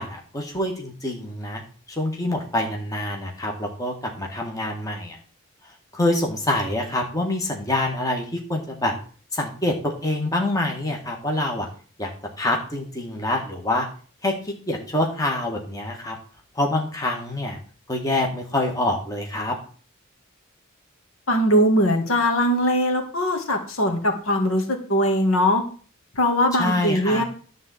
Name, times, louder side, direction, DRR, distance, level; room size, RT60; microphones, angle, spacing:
voice 1, 0.0-1.6 1.9-5.2 5.9-8.9 9.3-11.7 12.0-12.1 12.4-13.9 14.2-16.2 16.5-17.6 17.9-19.6 26.5-27.2, left 1 dB, 15° left, 1 dB, 1.6 m, -26 dB
voice 2, 21.3-25.6 26.2-27.2, equal, 75° left, 3 dB, 1.9 m, -21 dB
11.0 x 4.1 x 7.7 m, 0.42 s
head